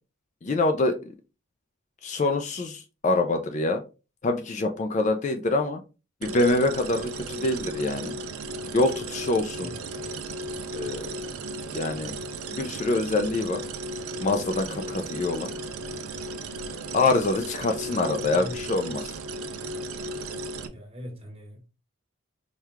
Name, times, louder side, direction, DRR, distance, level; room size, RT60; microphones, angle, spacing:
voice 1, 0.4-1.0 2.0-3.8 4.2-5.8 6.2-8.2 8.7-9.7 10.8-11.1 11.7-12.1 12.5-13.6 14.2-15.6 16.9-19.1, left 2 dB, 35° left, 0.3 m, -25 dB
sound 1, 6.2-20.7, right 2 dB, 85° right, 0.5 m, -35 dB
voice 2, 9.6-10.2 17.8-18.8 20.7-21.7, equal, 25° right, 1.0 m, -42 dB
4.6 x 2.3 x 3.4 m
head